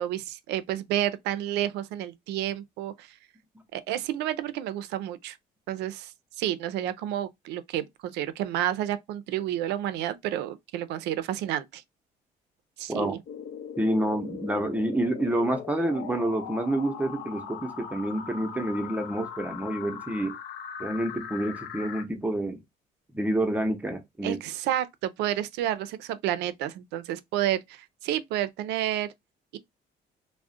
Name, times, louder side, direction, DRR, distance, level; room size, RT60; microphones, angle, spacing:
voice 1, 0.0-3.1 3.7-5.4 5.7-6.1 6.4-11.8 12.8-13.2 24.2-29.1 29.5-29.6, right 12 dB, 85° right, 0.4 m, -30 dB
sound 1, 13.3-22.0, left 7 dB, 75° left, 0.6 m, -40 dB
voice 2, 13.8-20.4 20.8-22.6 23.1-24.4, right 1 dB, 10° right, 0.6 m, -28 dB
2.4 x 2.1 x 3.6 m
cardioid pair, 110°, 17 cm